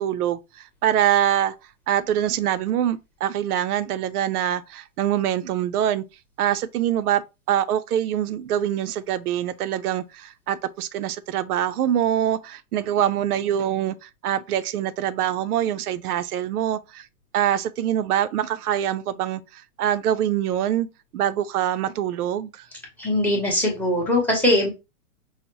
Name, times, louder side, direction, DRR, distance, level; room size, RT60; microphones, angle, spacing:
voice 1, 0.0-1.5 1.9-6.0 6.4-7.2 7.5-17.1 17.3-20.9 21.1-22.7, right 11 dB, 80° right, 0.5 m, -24 dB
voice 2, 23.0-24.7, left 1 dB, 5° left, 0.7 m, -21 dB
5.5 x 2.0 x 2.9 m
hypercardioid pair, 140°, 44 cm